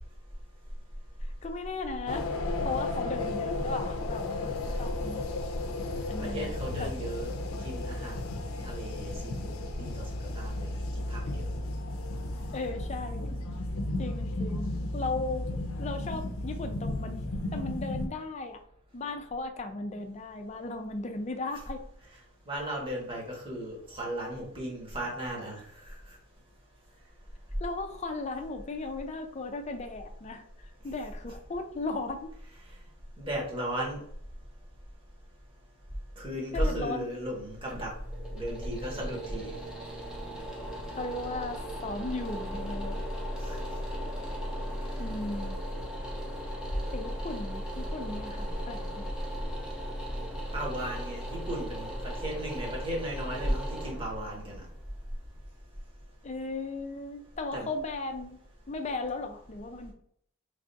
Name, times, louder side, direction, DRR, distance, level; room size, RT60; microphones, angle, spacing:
voice 1, 1.4-2.3 2.6-5.3 6.1-6.5 6.8-7.0 12.5-13.3 14.0-18.6 18.9-21.8 27.6-32.3 36.5-37.1 41.0-43.0 45.0-45.6 46.9-49.1 56.2-58.4 58.7-59.9, left 3 dB, 30° left, 7 dB, 0.4 m, -36 dB
sound 1, 2.1-18.1, left 2 dB, 85° left, 0.5 m, -34 dB
voice 2, 6.2-8.3 8.6-10.1 10.3-11.5 22.5-25.6 33.2-34.0 36.2-37.9 38.3-39.5 43.4-43.6 50.5-54.6 57.5-57.7, right 1 dB, 25° right, -2 dB, 1.1 m, -35 dB
sound 2, 37.3-56.2, equal, 5° right, 0.7 m, -37 dB
3.3 x 2.4 x 3.9 m, 0.66 s
head